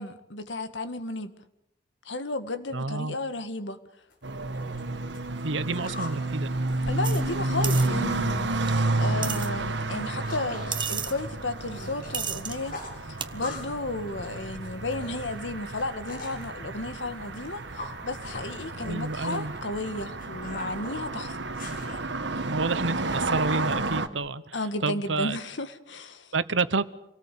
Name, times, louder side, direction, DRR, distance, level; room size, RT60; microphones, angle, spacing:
voice 1, 0.0-1.3 2.1-3.8 6.9-12.8 13.1-21.5 24.5-26.3, left 2 dB, 80° left, 1.9 m, -33 dB
voice 2, 2.7-3.2 5.4-6.5 18.9-19.5 22.5-24.6 24.8-25.4 26.3-26.8, right 3 dB, 90° right, 1.1 m, -29 dB
sound 1, 4.1-4.2 4.5-6.2 6.5-7.9 8.2-8.5 8.7-9.3 9.6-12.1 12.4-13.8 14.1-16.5 17.0-22.0, left 3 dB, 50° left, 7.4 m, -42 dB
sound 2, 4.2-24.1, right 2 dB, 70° right, 1.6 m, -31 dB
sound 3, 7.0-7.2 7.6-7.9 8.7-8.8 9.2-9.5 10.7-11.1 12.1-12.6 13.2-13.3, right 7 dB, 25° right, 1.3 m, -31 dB
28.0 x 18.5 x 8.5 m
head